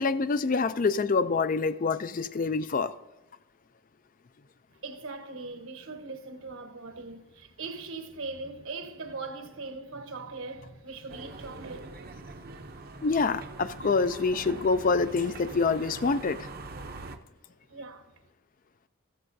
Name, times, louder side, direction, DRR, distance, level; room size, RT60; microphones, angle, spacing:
voice 1, 0.0-2.9 13.0-16.5, left 4 dB, 40° left, 0.4 m, -26 dB
voice 2, 4.7-11.8 17.1-17.3 17.7-18.1, right 3 dB, 70° right, 1.1 m, -40 dB
sound 1, 11.1-17.2, right 3 dB, 45° right, 0.7 m, -43 dB
14.5 x 14.0 x 2.7 m
head